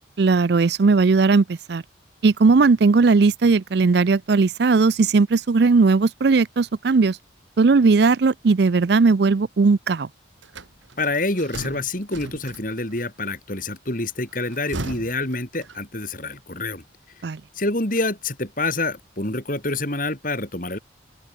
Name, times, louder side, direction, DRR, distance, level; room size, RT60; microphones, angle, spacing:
voice 1, 0.2-1.8 2.2-7.2 7.6-10.1 17.2-17.4, right 4 dB, 60° right, 0.5 m, -17 dB
sound 1, 10.4-13.0 14.3-16.1, right 2 dB, 75° right, 2.2 m, -37 dB
voice 2, 11.0-16.8 17.5-20.8, left 2 dB, 45° left, 4.8 m, -27 dB
open air
head